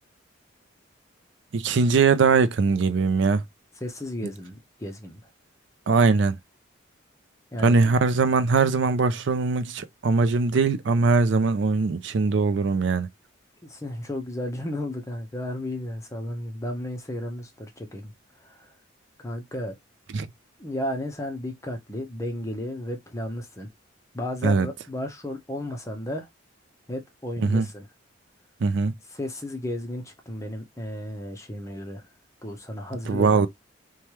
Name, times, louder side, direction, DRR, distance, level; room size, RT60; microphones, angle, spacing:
voice 1, 1.5-3.4 5.9-6.4 7.6-13.1 20.1-20.3 24.4-24.7 27.4-27.7 28.6-28.9 33.1-33.5, right 4 dB, 65° right, 0.4 m, -21 dB
voice 2, 3.8-5.2 7.5-7.8 13.6-18.1 18.4-18.7 19.2-19.8 20.6-23.7 24.1-26.3 26.9-27.9 29.1-32.0 32.4-33.5, left 1 dB, 15° left, 0.6 m, -33 dB
3.2 x 2.2 x 2.9 m
head